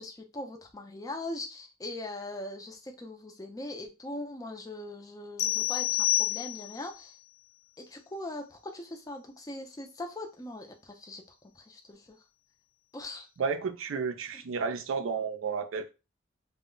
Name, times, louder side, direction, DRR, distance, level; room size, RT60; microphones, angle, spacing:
voice 1, 0.0-7.2 7.8-11.2 11.6-12.1 12.9-13.3, left 2 dB, 15° left, 0.4 m, -40 dB
sound 1, 5.4-7.0, left 15 dB, 80° left, 0.4 m, -28 dB
voice 2, 13.4-15.9, right 5 dB, 70° right, 0.4 m, -32 dB
2.1 x 2.0 x 3.7 m
head